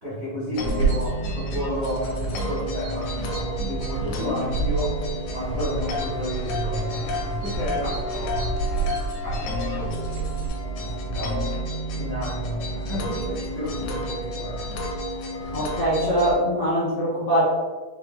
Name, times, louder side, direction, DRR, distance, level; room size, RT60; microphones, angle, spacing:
voice 1, 0.0-5.0 5.3-8.5 9.2-10.0 10.7-11.5 11.9-14.6, equal, 90° right, -10 dB, 0.5 m, -31 dB
sound 1, 0.5-16.3, equal, 75° left, 1.9 m, -31 dB
sound 2, 0.7-10.5, right 4 dB, 70° right, 1.8 m, -30 dB
voice 2, 15.5-17.4, equal, 50° left, -11 dB, 0.8 m, -22 dB
5.6 x 2.2 x 3.6 m, 1.4 s
omnidirectional pair, 3.7 m